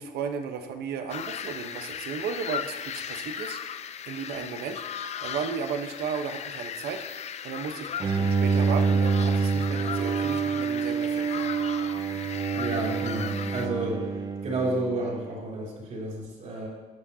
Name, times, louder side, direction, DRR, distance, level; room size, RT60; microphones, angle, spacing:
voice 1, 0.0-4.8 5.2-7.0 7.4-11.5, right 6 dB, 70° right, 7 dB, 1.0 m, -35 dB
sound 1, 1.1-13.7, left 8 dB, 40° left, 0.5 m, -37 dB
Bowed string instrument, 8.0-15.2, right 5 dB, 25° right, 0.6 m, -27 dB
voice 2, 12.5-14.0 14.4-16.7, right 2 dB, 45° right, -3 dB, 3.4 m, -31 dB
17.0 x 6.0 x 2.8 m, 1.3 s
cardioid pair, 110°, 17 cm